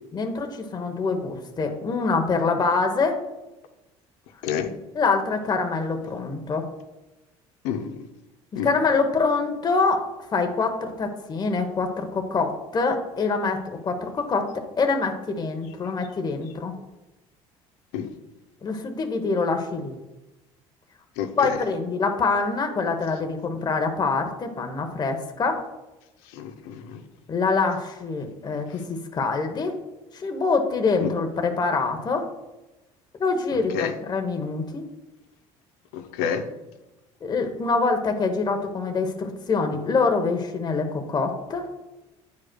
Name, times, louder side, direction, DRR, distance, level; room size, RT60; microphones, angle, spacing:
voice 1, 0.1-3.2 4.9-6.7 8.5-10.0 10.3-16.7 18.6-20.0 21.4-25.6 27.3-29.8 30.1-32.3 33.2-34.8 37.2-41.7, left 4 dB, 30° left, 4 dB, 0.9 m, -25 dB
voice 2, 4.4-4.7 7.6-8.0 8.6-8.7 17.9-18.1 21.2-21.6 26.3-27.0 28.7-28.8 31.0-31.1 33.7-33.9 35.9-36.4, left 8 dB, 85° left, 7 dB, 0.6 m, -29 dB
9.3 x 5.0 x 2.2 m, 1.0 s
supercardioid pair, 90°, 13 cm